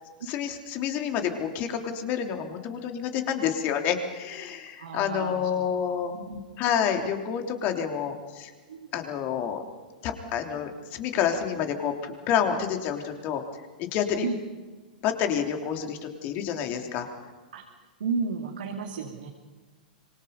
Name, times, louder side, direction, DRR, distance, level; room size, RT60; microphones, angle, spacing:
voice 1, 0.3-6.1 6.6-8.5 8.9-9.6 10.0-13.4 13.8-14.2 15.0-17.1, left 8 dB, 40° left, 4 dB, 3.4 m, -28 dB
voice 2, 4.8-5.7 6.1-6.4 8.7-8.9 14.2-14.4 17.5-17.6 18.0-19.3, right 5 dB, 70° right, 1 dB, 2.8 m, -32 dB
26.0 x 25.0 x 5.4 m, 1.3 s
figure-of-eight pair, 100°, 5 cm